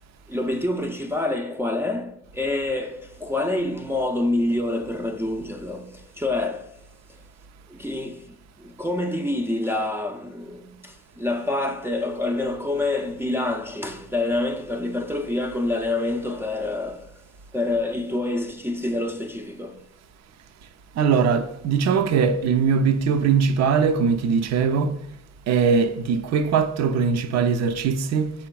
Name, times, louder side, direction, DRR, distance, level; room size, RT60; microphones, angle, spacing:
voice 1, 0.3-6.7 7.7-17.2 17.5-19.8, left 2 dB, 10° right, 0.4 m, -27 dB
voice 2, 21.0-25.0 25.5-28.3, right 6 dB, 60° right, 0.5 m, -21 dB
4.9 x 4.3 x 2.3 m
cardioid pair, 90°, 30 cm